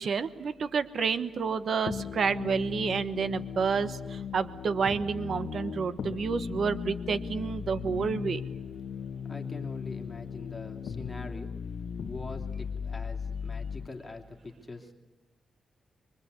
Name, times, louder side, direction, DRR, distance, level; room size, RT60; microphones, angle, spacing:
voice 1, 0.0-8.4, right 5 dB, 55° right, 12 dB, 1.1 m, -29 dB
sound 1, 1.9-13.9, left 6 dB, 70° left, 1.7 m, -37 dB
voice 2, 9.3-11.5 12.0-14.9, left 3 dB, 20° left, 2 dB, 2.8 m, -43 dB
24.0 x 24.0 x 8.2 m, 1.1 s
wide cardioid pair, 135°, 0 cm